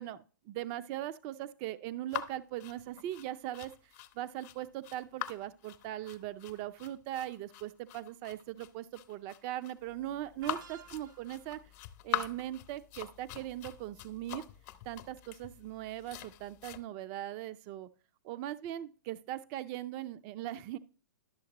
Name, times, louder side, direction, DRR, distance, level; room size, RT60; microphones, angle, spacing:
voice 1, 0.0-11.6 12.0-14.4 14.8-17.9 18.2-20.8, right 13 dB, 40° right, 13 dB, 0.6 m, -40 dB
sound 1, 2.1-16.8, left 12 dB, 45° left, 0.9 m, -43 dB
sound 2, 10.4-11.5, right 8 dB, 70° right, 1.5 m, -53 dB
12.0 x 7.1 x 3.0 m, 0.36 s
hypercardioid pair, 120°, 11 cm